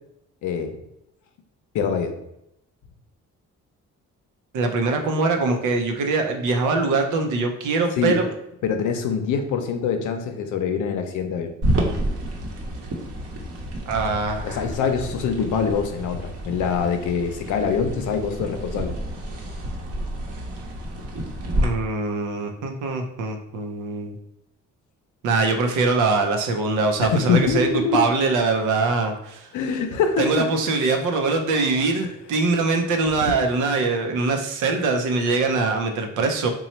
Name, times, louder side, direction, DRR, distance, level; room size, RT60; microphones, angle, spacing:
voice 1, 0.4-0.8 1.7-2.1 8.0-8.2 8.6-11.5 14.4-18.9 27.0-28.1 29.5-30.5 32.0-32.1 33.2-33.3, left 6 dB, 75° left, 6 dB, 0.6 m, -24 dB
voice 2, 4.5-8.3 13.9-14.6 21.6-24.1 25.2-29.5 30.2-36.5, right 3 dB, 80° right, 4 dB, 0.7 m, -23 dB
sound 1, 11.6-21.7, right 1 dB, 50° right, 0.9 m, -29 dB
3.0 x 2.3 x 4.2 m, 0.82 s
cardioid pair, 90°, 30 cm